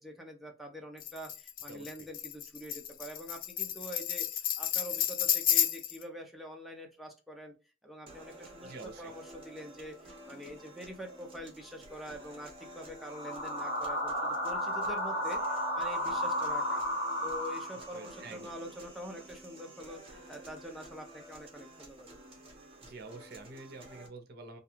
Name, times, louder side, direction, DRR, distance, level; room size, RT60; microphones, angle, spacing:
voice 1, 0.0-7.5 7.8-16.8 17.2-22.1, equal, ahead, 1 dB, 0.5 m, -45 dB
Tambourine, 1.0-6.0, left 10 dB, 50° left, 0.3 m, -31 dB
sound 1, 8.1-24.1, right 1 dB, 30° right, 0.8 m, -52 dB
voice 2, 8.6-9.1 17.9-18.5 22.8-24.6, right 3 dB, 60° right, 6 dB, 0.6 m, -47 dB
sound 2, 13.0-18.1, equal, 75° left, 1.0 m, -33 dB
2.4 x 2.3 x 2.9 m, 0.31 s
head